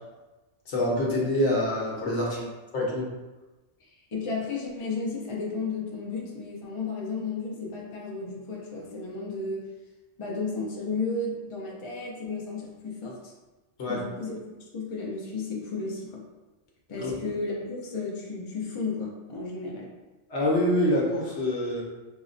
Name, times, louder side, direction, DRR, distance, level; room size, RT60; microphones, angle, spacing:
voice 1, 0.7-2.4 2.7-3.1 13.8-14.0 17.0-17.1 20.3-21.8, left 1 dB, 80° left, -4 dB, 1.1 m, -25 dB
voice 2, 3.8-9.6 10.2-13.3 13.8-14.4 14.7-16.2 16.9-19.9, left 3 dB, 35° left, -3 dB, 0.5 m, -33 dB
4.8 x 2.1 x 2.5 m, 1.1 s
omnidirectional pair, 1.2 m